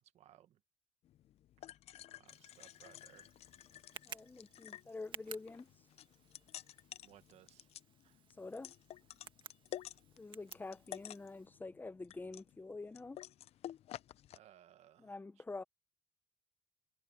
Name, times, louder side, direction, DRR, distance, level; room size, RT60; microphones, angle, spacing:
voice 1, 0.1-0.6 2.2-3.3 7.0-7.7 8.0-8.2 14.3-15.4, right 12 dB, 70° right, 1.6 m, -63 dB
sound 1, 1.0-14.4, left 12 dB, 65° left, 0.6 m, -52 dB
Tick, 2.3-11.5, right 7 dB, 45° right, 1.6 m, -56 dB
voice 2, 4.1-5.7 8.4-8.7 10.2-13.2 15.0-15.6, left 3 dB, 15° left, 0.8 m, -47 dB
cardioid pair, 115°, 12 cm